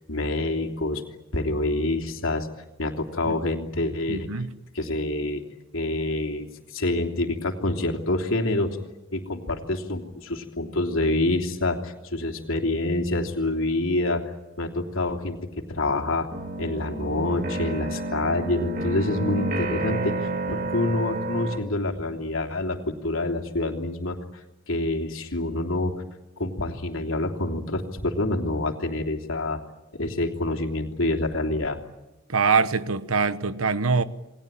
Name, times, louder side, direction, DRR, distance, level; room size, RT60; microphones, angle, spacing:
voice 1, 0.1-1.0 1.3-2.5 2.8-4.3 4.7-5.4 5.7-8.8 9.1-14.2 14.6-16.3 16.6-24.2 24.7-25.9 26.4-29.6 29.9-31.8, left 2 dB, 75° left, 3.2 m, -27 dB
voice 2, 4.1-4.5 32.3-34.0, right 4 dB, 90° right, 1.2 m, -23 dB
sound 1, 15.7-21.6, right 2 dB, 45° right, 3.0 m, -30 dB
28.5 x 20.5 x 9.0 m
head